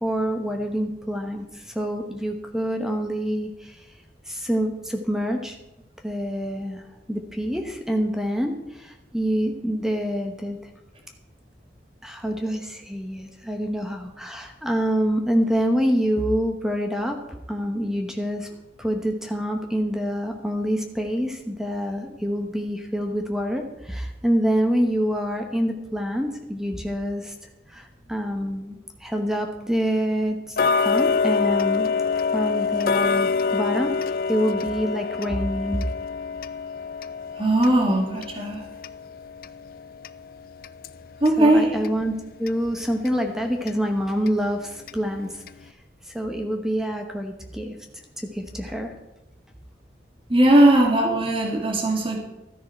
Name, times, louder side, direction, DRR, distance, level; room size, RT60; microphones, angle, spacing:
voice 1, 0.0-3.9 4.3-5.6 6.0-10.6 12.0-17.2 17.5-18.5 18.8-27.3 27.7-31.9 32.3-35.9 41.4-45.7 46.1-47.7 48.2-48.9, equal, 5° right, 3 dB, 1.0 m, -26 dB
Tick-tock, 30.6-41.4 41.8-41.9 42.5-42.6 43.0-43.1 43.7-43.8 44.3-44.4 44.9-45.0 45.5-45.6, left 5 dB, 50° left, 0.4 m, -26 dB
voice 2, 37.4-38.6 41.2-41.8 50.3-52.2, right 1 dB, 30° right, 1 dB, 2.1 m, -19 dB
13.0 x 10.0 x 4.4 m, 0.97 s
head